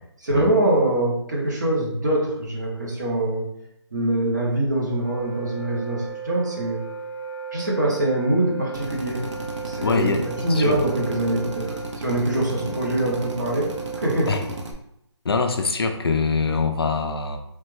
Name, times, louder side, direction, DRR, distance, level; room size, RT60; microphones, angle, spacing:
voice 1, 0.2-3.4 3.9-6.8 7.5-9.2 9.6-14.4, right 1 dB, 40° right, -3 dB, 0.8 m, -24 dB
Wind instrument woodwind instrument, 4.7-14.6, right 6 dB, 65° right, 1.0 m, -36 dB
Drill, 8.7-14.7, right 2 dB, 85° right, 0.6 m, -35 dB
voice 2, 9.8-10.2 10.5-10.8 12.7-12.8 14.3-14.4 15.2-17.4, left 4 dB, 55° left, 5 dB, 0.4 m, -23 dB
3.2 x 2.1 x 3.1 m, 0.78 s
hypercardioid pair, 180°, 15 cm